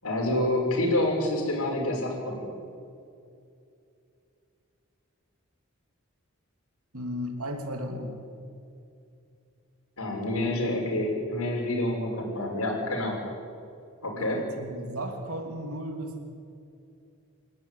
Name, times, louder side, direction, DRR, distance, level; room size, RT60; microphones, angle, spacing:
voice 1, 0.0-2.5 10.0-13.2 14.0-14.4, left 1 dB, 80° left, 0 dB, 6.5 m, -28 dB
voice 2, 6.9-8.2 14.2-16.2, equal, 75° right, 3 dB, 2.9 m, -35 dB
28.0 x 14.0 x 9.5 m, 2.5 s
head